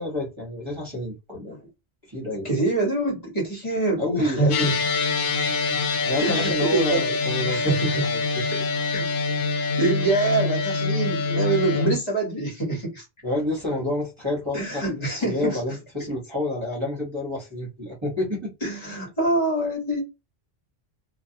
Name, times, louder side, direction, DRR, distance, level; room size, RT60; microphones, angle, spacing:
voice 1, 0.0-1.5 2.1-2.5 4.0-4.8 6.1-8.6 11.7-11.9 13.2-18.5, left 1 dB, 30° right, 0.9 m, -29 dB
voice 2, 2.4-4.7 6.2-7.1 7.5-8.0 8.9-9.1 9.8-13.0 14.5-15.6 18.6-20.0, right 2 dB, 40° left, 1.2 m, -25 dB
sound 1, 4.5-12.0, left 4 dB, 65° left, 0.7 m, -25 dB
2.3 x 2.1 x 2.6 m
omnidirectional pair, 1.0 m